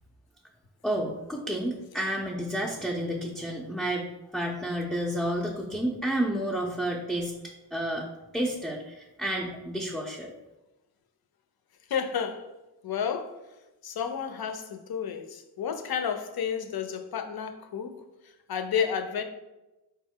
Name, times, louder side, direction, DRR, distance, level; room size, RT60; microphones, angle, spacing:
voice 1, 0.8-7.4 7.7-8.1 8.3-10.3, right 1 dB, ahead, -2 dB, 0.4 m, -30 dB
voice 2, 11.9-12.5 12.8-13.4 13.8-18.0 18.5-19.2, left 7 dB, 60° left, 7 dB, 0.5 m, -31 dB
4.1 x 2.1 x 3.6 m, 1.0 s
cardioid pair, 40°, 43 cm